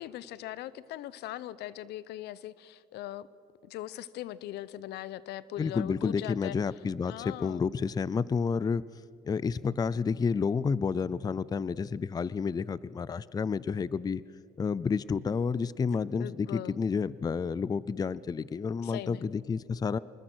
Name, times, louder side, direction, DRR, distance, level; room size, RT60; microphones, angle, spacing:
voice 1, 0.0-3.3 3.6-6.6 7.1-7.7 16.2-16.9 18.8-19.3, left 13 dB, 80° left, 18 dB, 0.8 m, -40 dB
voice 2, 5.6-8.8 9.2-14.2 14.6-20.0, left 5 dB, 25° left, 20 dB, 0.5 m, -30 dB
26.5 x 21.0 x 6.3 m, 2.6 s
cardioid pair, 110°, 17 cm